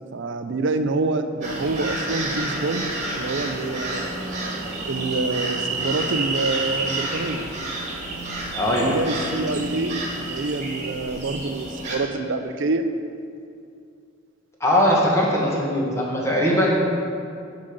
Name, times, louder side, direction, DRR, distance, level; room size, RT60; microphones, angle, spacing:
voice 1, 0.1-2.9 3.1-4.1 4.9-7.5 8.7-12.9 15.8-15.9, right 3 dB, 65° right, 8 dB, 0.6 m, -26 dB
sound 1, 1.4-12.0, right 2 dB, 35° right, 1.8 m, -29 dB
voice 2, 8.5-9.0 14.6-16.8, equal, 15° left, -4 dB, 1.6 m, -20 dB
11.0 x 5.2 x 5.2 m, 2.4 s
head